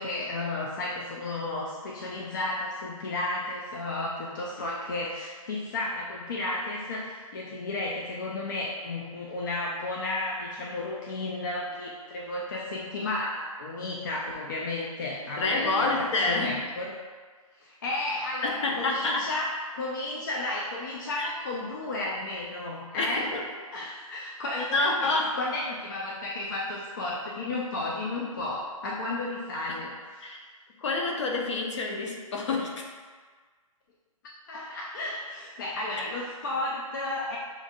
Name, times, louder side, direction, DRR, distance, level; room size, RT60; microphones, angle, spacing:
voice 1, 0.0-17.0 17.6-23.3 23.7-30.2 34.5-37.4, left 2 dB, 35° left, -3 dB, 0.4 m, -33 dB
voice 2, 15.4-16.6 18.4-19.3 21.1-21.3 23.0-23.5 24.5-25.4 29.7-29.8 30.2-30.5 30.8-32.9, left 3 dB, 55° left, 1 dB, 0.7 m, -28 dB
6.3 x 2.4 x 2.6 m, 1.5 s
hypercardioid pair, 165°, 18 cm